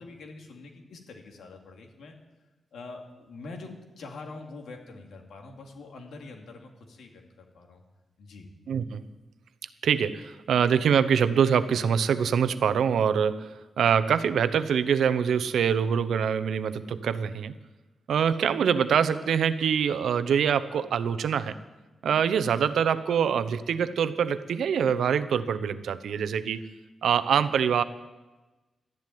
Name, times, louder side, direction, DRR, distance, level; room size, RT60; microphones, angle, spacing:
voice 1, 0.0-2.2 2.7-3.7 4.0-7.8 8.2-8.5, left 3 dB, 90° left, 2 dB, 2.6 m, -44 dB
voice 2, 8.7-9.0 9.8-17.5 18.1-21.5 22.0-26.7 27.0-27.8, right 7 dB, 90° right, 12 dB, 0.8 m, -24 dB
13.0 x 10.5 x 9.3 m, 1.1 s
wide cardioid pair, 170°, 0 cm